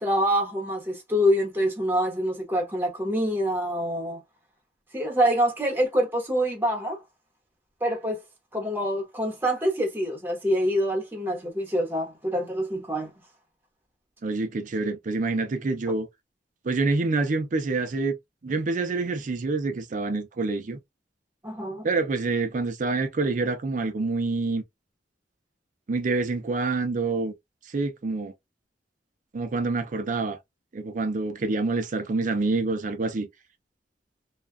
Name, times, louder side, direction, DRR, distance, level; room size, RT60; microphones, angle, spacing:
voice 1, 0.0-4.2 4.9-7.0 7.8-8.2 8.5-13.1 21.4-21.9, equal, 10° right, 0.9 m, -25 dB
voice 2, 14.2-16.1 16.6-18.2 18.4-20.8 21.8-24.6 25.9-27.3 27.7-28.3 29.3-30.4 30.7-33.3, right 3 dB, 45° right, 0.4 m, -27 dB
2.3 x 2.2 x 2.5 m
head